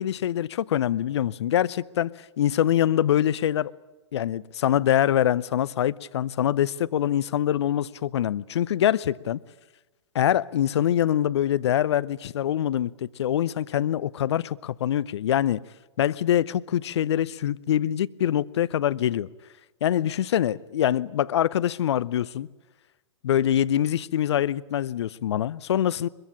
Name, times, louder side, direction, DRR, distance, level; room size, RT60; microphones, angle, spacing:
voice 1, 0.0-3.7 4.1-9.4 10.1-15.6 16.0-19.3 19.8-22.5 23.2-26.1, left 11 dB, 60° left, 0.7 m, -24 dB
22.0 x 22.0 x 8.7 m
figure-of-eight pair, 105°, 16 cm